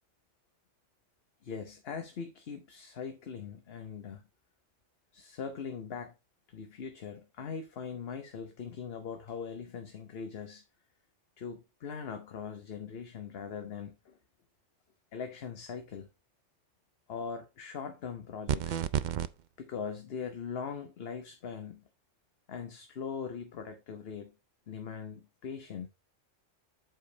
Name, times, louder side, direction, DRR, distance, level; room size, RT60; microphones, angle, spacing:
voice 1, 1.4-4.2 5.1-6.1 6.5-10.6 11.4-14.2 15.1-16.1 17.1-18.8 19.6-21.8 22.5-24.3 24.7-25.9, left 6 dB, 55° left, 1.1 m, -41 dB
sound 1, 18.5-19.3, right 9 dB, 65° right, 0.4 m, -30 dB
7.9 x 5.1 x 3.9 m
omnidirectional pair, 1.3 m